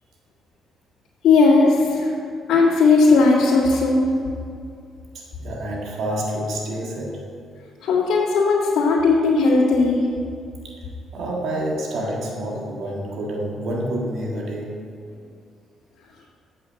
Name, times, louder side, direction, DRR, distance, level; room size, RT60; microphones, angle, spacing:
voice 1, 1.2-2.1 2.5-4.1 7.8-10.0, left 3 dB, 85° left, -7 dB, 1.8 m, -17 dB
voice 2, 5.1-7.2 10.6-14.9, right 1 dB, 75° right, -2 dB, 1.6 m, -28 dB
8.1 x 6.2 x 7.5 m, 2.4 s
cardioid pair, 90°, 0 cm